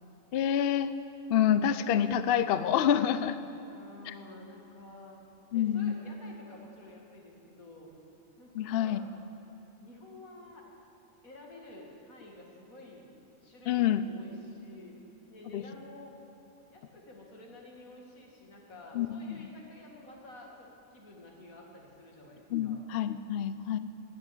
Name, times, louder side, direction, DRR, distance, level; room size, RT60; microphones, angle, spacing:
voice 1, 0.3-0.9 1.3-3.4 4.1-4.2 5.5-6.0 8.5-9.0 13.7-14.0 15.5-15.6 18.9-19.5 22.5-23.8, left 9 dB, 60° left, 12 dB, 0.6 m, -27 dB
voice 2, 3.7-5.2 5.5-7.9 8.4-9.1 9.8-10.6 11.2-13.1 13.4-15.0 15.3-16.1 16.7-22.9, left 2 dB, 80° left, -1 dB, 2.6 m, -51 dB
13.0 x 10.0 x 9.6 m, 2.8 s
omnidirectional pair, 1.5 m